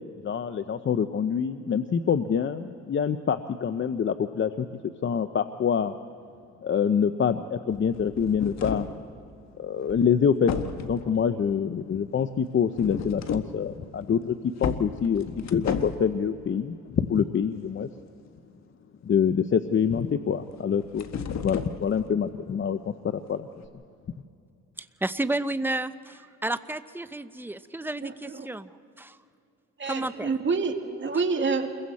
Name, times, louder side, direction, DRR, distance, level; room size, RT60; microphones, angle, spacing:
voice 1, 0.2-4.7 5.0-5.9 6.6-8.9 9.6-10.5 10.8-14.3 14.6-17.9 19.0-21.1 21.4-23.5, left 7 dB, 40° left, 10 dB, 0.8 m, -26 dB
sound 1, 7.7-9.0 9.9-10.1 10.5-11.1 12.7-13.6 14.0-14.1 14.6-16.1 20.6-22.2 23.6-23.7, left 6 dB, 60° left, 1.4 m, -33 dB
voice 2, 24.8-28.7 29.0-29.2 29.9-30.3, right 2 dB, 5° right, 12 dB, 0.8 m, -31 dB
voice 3, 28.0-28.5 29.8-31.7, right 4 dB, 40° right, 4 dB, 2.1 m, -28 dB
29.0 x 22.0 x 4.2 m, 2.6 s
cardioid pair, 90°, 30 cm